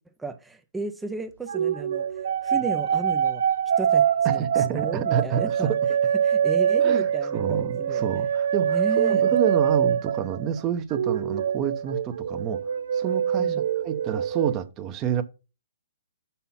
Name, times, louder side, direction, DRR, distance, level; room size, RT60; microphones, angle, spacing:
voice 1, 0.2-3.4 3.8-5.8 6.2-8.2 8.6-9.2 13.4-13.7, right 3 dB, 5° right, 0.5 m, -34 dB
sound 1, 1.5-10.6 10.9-14.5, right 8 dB, 65° right, 0.5 m, -24 dB
voice 2, 4.3-5.8 6.8-12.6 12.9-13.5 13.8-15.2, right 9 dB, 25° right, 0.8 m, -29 dB
5.8 x 5.6 x 5.7 m
hypercardioid pair, 150°, 0 cm